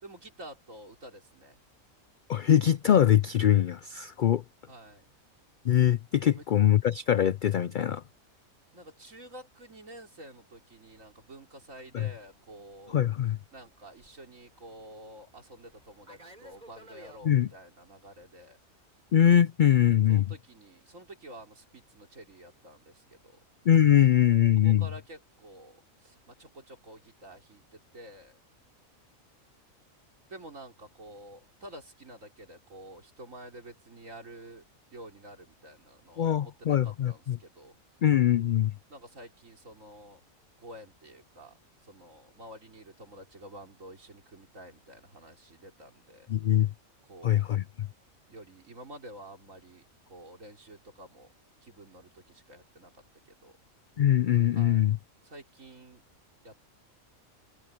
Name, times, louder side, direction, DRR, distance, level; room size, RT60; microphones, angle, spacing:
voice 1, 0.0-1.6 4.7-5.0 6.2-6.4 8.7-13.0 13.5-18.6 20.1-23.4 24.6-28.4 30.3-34.6 34.9-37.7 38.9-40.2 40.6-41.6 41.8-46.3 47.1-47.5 48.3-51.3 51.6-52.9 53.3-53.5 54.5-54.9 55.2-56.0 56.4-56.6, right 1 dB, 70° right, 4.1 m, -49 dB
voice 2, 2.3-4.4 5.6-8.0 11.9-12.1 12.9-13.4 17.2-17.5 19.1-20.2 23.7-24.9 36.2-37.4 38.0-38.7 46.3-46.7 47.2-47.9 54.0-55.0, left 10 dB, 80° left, 0.4 m, -23 dB
Fixed-wing aircraft airplane, 10.7-17.3, right 1 dB, 30° right, 3.3 m, -57 dB
omnidirectional pair, 1.4 m